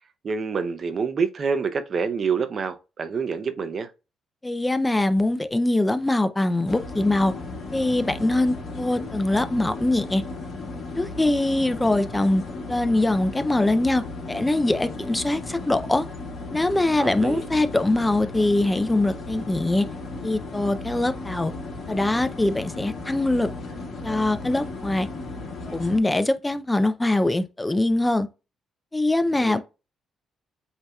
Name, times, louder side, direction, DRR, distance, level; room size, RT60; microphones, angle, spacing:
voice 1, 0.2-3.9 17.0-17.4 29.4-29.6, right 5 dB, 45° right, 0.6 m, -27 dB
voice 2, 4.4-7.3 7.7-10.2 11.0-12.4 12.7-16.1 16.5-19.9 20.2-21.5 21.9-23.5 24.0-25.1 25.7-28.3 28.9-29.6, left 2 dB, 15° left, 0.4 m, -23 dB
sound 1, 6.7-26.0, left 3 dB, 50° left, 2.0 m, -35 dB
7.9 x 2.7 x 2.3 m
cardioid pair, 90°, 0 cm